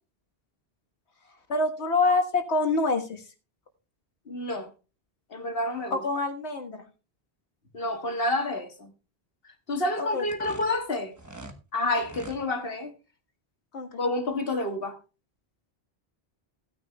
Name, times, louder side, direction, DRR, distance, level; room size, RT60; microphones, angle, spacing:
voice 1, 1.5-3.2 5.9-6.8 10.0-10.2 13.7-14.0, left 3 dB, 90° left, 1.8 m, -26 dB
voice 2, 4.3-4.7 5.3-6.0 7.7-8.9 9.7-11.1 11.7-12.9 14.0-15.0, left 2 dB, 60° left, 1.8 m, -29 dB
sound 1, 10.2-11.6 12.0-12.4, right 2 dB, 15° right, 1.0 m, -44 dB
16.5 x 9.7 x 2.3 m
omnidirectional pair, 1.1 m